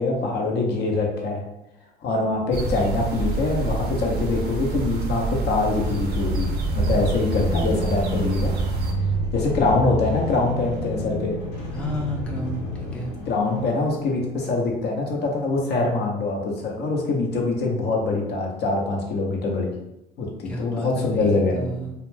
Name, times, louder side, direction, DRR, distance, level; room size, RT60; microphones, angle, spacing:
voice 1, 0.0-1.4 2.0-6.5 6.7-8.5 9.0-9.1 9.3-11.4 13.3-19.7 20.2-21.7, left 3 dB, 55° left, 0 dB, 0.7 m, -24 dB
sound 1, 2.5-8.9, right 3 dB, 50° right, 0.6 m, -27 dB
sound 2, 5.5-14.2, equal, 85° left, 1.0 m, -30 dB
voice 2, 11.7-13.1 20.4-21.9, equal, 5° left, -1 dB, 0.5 m, -32 dB
2.3 x 2.2 x 3.2 m, 0.89 s
supercardioid pair, 80°, 21 cm